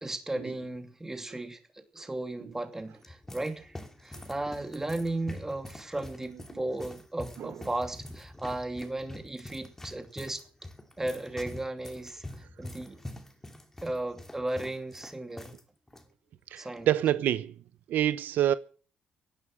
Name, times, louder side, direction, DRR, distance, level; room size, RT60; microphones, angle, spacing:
voice 1, 0.0-10.4 11.0-13.0 13.8-15.6 16.6-16.9, right 2 dB, 15° right, 2.7 m, -35 dB
sound 1, 2.7-15.6 15.9-16.0 16.8-17.1, left 1 dB, 10° left, 2.7 m, -45 dB
voice 2, 16.5-17.5 17.9-18.5, right 11 dB, 75° right, 0.7 m, -26 dB
17.0 x 11.5 x 6.3 m
cardioid pair, 100°, 3 cm